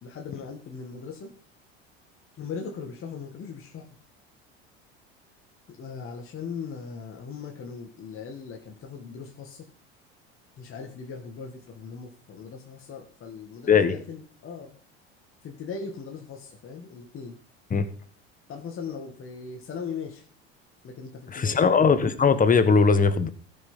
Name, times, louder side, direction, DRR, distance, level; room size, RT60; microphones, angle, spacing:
voice 1, 0.0-1.3 2.4-3.9 5.7-9.6 10.6-14.8 15.4-17.4 18.5-20.2 20.8-21.7, left 5 dB, 40° left, 2 dB, 2.0 m, -39 dB
voice 2, 21.3-23.3, left 5 dB, 25° left, 12 dB, 1.4 m, -20 dB
14.5 x 6.0 x 5.7 m, 0.44 s
hypercardioid pair, 85°, 32 cm